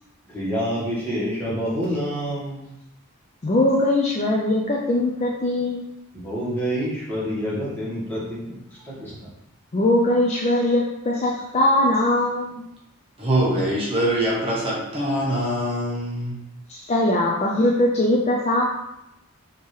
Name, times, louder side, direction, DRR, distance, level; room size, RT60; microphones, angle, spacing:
voice 1, 0.3-2.7 6.2-9.3, equal, 10° left, -9 dB, 1.5 m, -28 dB
voice 2, 3.4-5.9 9.7-12.6 16.7-18.6, left 1 dB, 30° left, -3 dB, 0.4 m, -21 dB
voice 3, 13.2-16.4, right 1 dB, 25° right, -5 dB, 0.9 m, -23 dB
5.3 x 2.9 x 3.2 m, 0.86 s
head